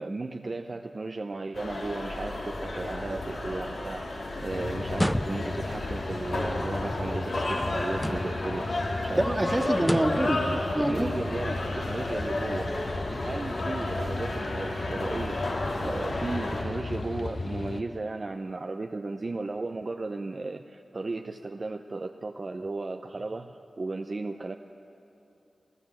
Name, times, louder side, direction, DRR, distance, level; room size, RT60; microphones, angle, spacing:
voice 1, 0.0-8.7 9.0-12.7 13.2-15.4 15.8-24.5, right 3 dB, 50° right, 5 dB, 0.7 m, -35 dB
sound 1, 1.5-16.6, left 2 dB, 75° left, 3.5 m, -33 dB
sound 2, 4.5-17.8, left 2 dB, 60° left, 1.1 m, -35 dB
sound 3, 4.9-5.7 7.9-8.6 9.8-10.3, equal, ahead, 0.5 m, -31 dB
voice 2, 9.1-11.2, right 1 dB, 20° right, 2 dB, 1.9 m, -26 dB
26.5 x 14.0 x 7.9 m, 2.9 s
cardioid pair, 55°, 0 cm